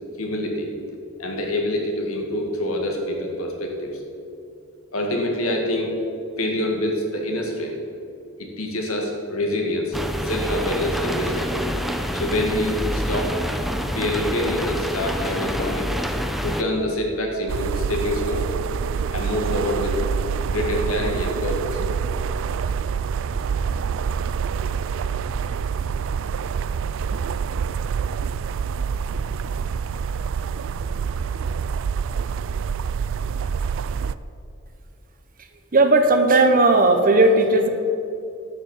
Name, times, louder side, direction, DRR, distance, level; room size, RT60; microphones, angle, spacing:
voice 1, 0.2-0.7 1.2-4.0 4.9-5.9 6.4-7.7 8.4-10.0 10.2-11.5 12.1-13.3 13.9-15.9 16.4-18.5 19.1-20.0 20.5-21.8, left 1 dB, 80° left, 1 dB, 2.1 m, -26 dB
sound 1, 9.9-16.6, equal, ahead, 0.7 m, -27 dB
sound 2, 17.5-34.1, right 6 dB, 65° right, 0.4 m, -26 dB
voice 2, 35.7-37.7, right 2 dB, 40° right, 6 dB, 1.0 m, -16 dB
11.5 x 6.8 x 7.3 m, 2.6 s
head